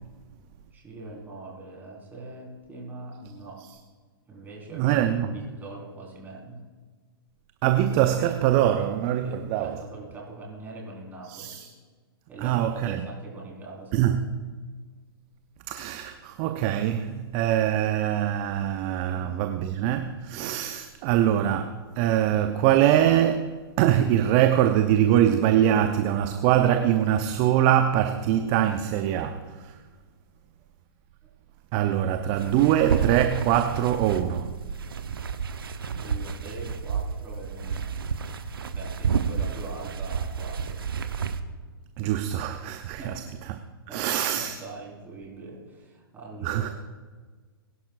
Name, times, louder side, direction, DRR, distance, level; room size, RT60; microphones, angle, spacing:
voice 1, 0.7-3.6 4.3-5.0 5.3-6.6 9.2-11.5 12.3-14.1 19.0-19.4 36.0-38.0 38.7-40.8 43.0-43.4 43.9-46.7, right 3 dB, 15° right, 4.4 m, -42 dB
voice 2, 4.7-5.4 7.6-9.8 11.3-11.7 12.4-13.1 13.9-14.3 15.7-29.8 31.7-34.5 42.0-43.2 43.5-43.6 43.9-44.6 46.4-46.7, right 11 dB, 35° right, 0.7 m, -23 dB
sound 1, 32.4-41.4, right 6 dB, 65° right, 0.9 m, -30 dB
21.5 x 11.5 x 2.5 m
figure-of-eight pair, 115°, 13 cm